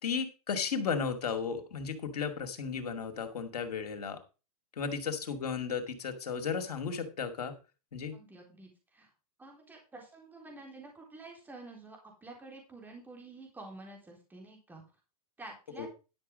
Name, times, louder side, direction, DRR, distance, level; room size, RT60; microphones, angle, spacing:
voice 1, 0.0-4.2 4.8-7.5 7.9-8.2 15.8-15.9, left 6 dB, 85° left, 6 dB, 2.3 m, -34 dB
voice 2, 8.1-9.1 9.4-14.8 15.4-15.9, right 2 dB, 10° right, 1 dB, 3.7 m, -49 dB
11.5 x 6.3 x 5.2 m, 0.31 s
hypercardioid pair, 125°, 20 cm